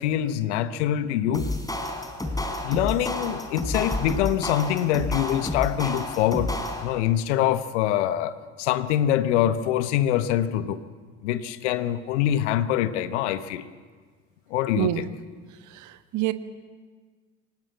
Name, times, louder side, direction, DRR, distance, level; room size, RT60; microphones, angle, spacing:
voice 1, 0.0-1.5 2.6-8.3 8.6-10.8 11.2-13.7 14.5-14.9, left 11 dB, 70° left, 13 dB, 1.2 m, -24 dB
sound 1, 1.3-7.1, left 2 dB, 10° left, 4.1 m, -30 dB
voice 2, 15.7-16.3, right 15 dB, 55° right, 12 dB, 1.4 m, -27 dB
24.5 x 19.0 x 7.8 m, 1.5 s
figure-of-eight pair, 55°, 35 cm